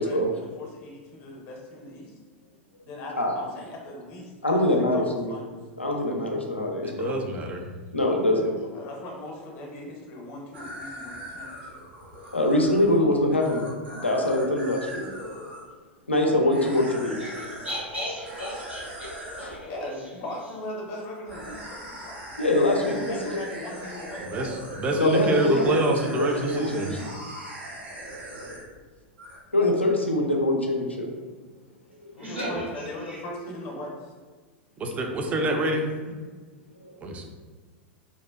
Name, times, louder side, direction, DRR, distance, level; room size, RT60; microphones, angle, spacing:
voice 1, 0.0-2.2 2.8-5.6 8.3-8.5 8.7-11.8 19.6-22.2 22.8-24.8 32.1-34.1, left 1 dB, 40° left, -1 dB, 0.6 m, -39 dB
voice 2, 4.4-5.4 5.8-7.2 7.9-8.7 12.3-13.6 14.0-15.1 16.1-17.2 19.4-19.6 22.4-23.4 25.0-25.8 26.0-27.0 29.5-31.1 36.8-36.9, left 1 dB, 90° left, 1 dB, 0.4 m, -24 dB
voice 3, 6.8-7.7 24.2-26.9 34.8-36.0 37.0-37.2, right 2 dB, 20° right, 2 dB, 0.3 m, -27 dB
sound 1, 10.5-15.6 16.5-17.8 18.2-19.5 21.3-28.8 29.2-29.4, equal, 65° right, 0.7 m, -40 dB
voice 4, 17.2-19.9 32.2-32.7 33.1-33.2, equal, 85° right, -7 dB, 1.2 m, -35 dB
2.5 x 2.1 x 2.2 m, 1.4 s
figure-of-eight pair, 90°, 6 cm